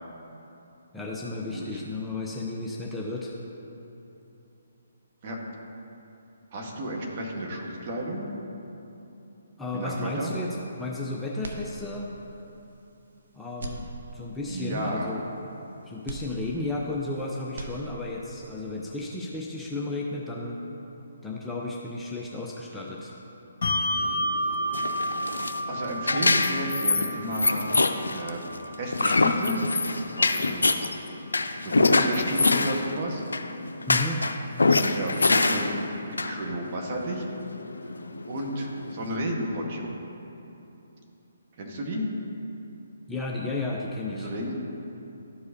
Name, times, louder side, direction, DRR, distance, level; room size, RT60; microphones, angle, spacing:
voice 1, 0.9-3.4 9.6-12.1 13.4-13.9 14.1-15.5 15.8-20.6 21.2-23.1 33.9-34.3 43.1-44.3, left 2 dB, 5° left, -4 dB, 0.5 m, -33 dB
voice 2, 1.5-1.8 5.2-5.4 6.5-8.3 9.7-10.3 14.5-15.1 25.7-27.7 28.1-28.4 28.8-29.6 30.2-30.8 31.1-31.2 31.6-33.2 34.7-37.2 37.8-39.9 41.6-42.1 44.1-44.6, equal, 40° right, -1 dB, 1.3 m, -32 dB
sound 1, 11.4-12.3 12.8-12.9 13.5-14.6 16.1-17.2 17.4-18.4, right 2 dB, 65° right, 0.7 m, -40 dB
Bell, 23.6-30.5, equal, 60° left, 1.0 m, -32 dB
sound 2, 24.0-39.1, left 3 dB, 80° left, 0.4 m, -26 dB
12.5 x 4.7 x 2.7 m, 3.0 s
figure-of-eight pair, 140°, 0 cm